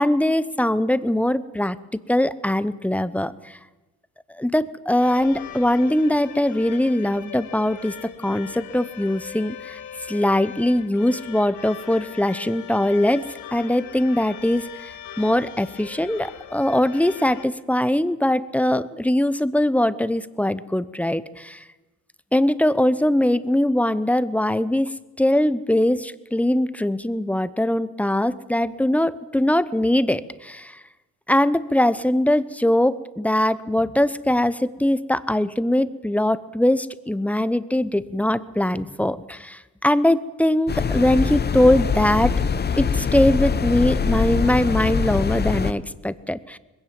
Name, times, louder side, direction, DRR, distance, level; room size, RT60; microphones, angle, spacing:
voice 1, 0.0-1.8 2.1-3.6 4.3-8.0 8.2-9.8 10.1-14.9 15.2-21.6 22.3-30.8 31.3-42.4 42.8-46.6, left 1 dB, 5° left, 15 dB, 0.8 m, -21 dB
sound 1, 5.0-17.5, left 9 dB, 75° left, 1.6 m, -40 dB
sound 2, 40.7-45.7, left 6 dB, 35° left, 0.9 m, -23 dB
21.0 x 16.5 x 7.6 m, 1.1 s
cardioid pair, 90°, 30 cm